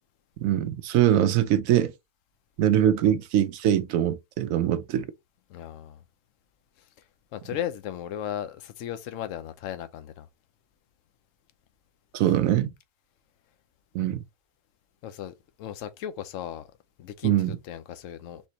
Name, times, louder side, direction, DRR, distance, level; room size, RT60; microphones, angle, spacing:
voice 1, 0.4-1.9 2.6-5.1 12.1-12.7 13.9-14.2 17.2-17.6, right 11 dB, 70° right, 0.9 m, -23 dB
voice 2, 5.5-6.0 7.3-10.3 15.0-16.7 17.0-18.4, left 10 dB, 65° left, 1.0 m, -36 dB
4.4 x 3.5 x 2.9 m
omnidirectional pair, 1.6 m